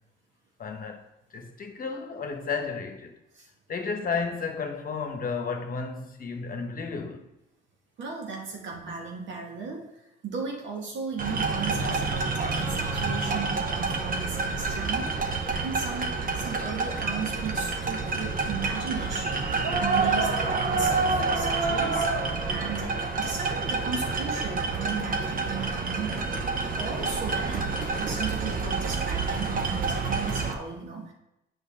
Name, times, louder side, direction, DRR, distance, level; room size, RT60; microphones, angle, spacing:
voice 1, 0.6-1.0 1.3-3.2 3.7-7.3, left 5 dB, 45° left, 1.0 m, -32 dB
voice 2, 8.0-9.9 10.2-16.1 16.4-22.1 22.5-26.3 26.7-31.1, right 5 dB, 70° right, 1.7 m, -36 dB
sound 1, 11.2-30.5, right 4 dB, 45° right, 0.9 m, -28 dB
8.1 x 5.3 x 3.7 m
cardioid pair, 90°, 20 cm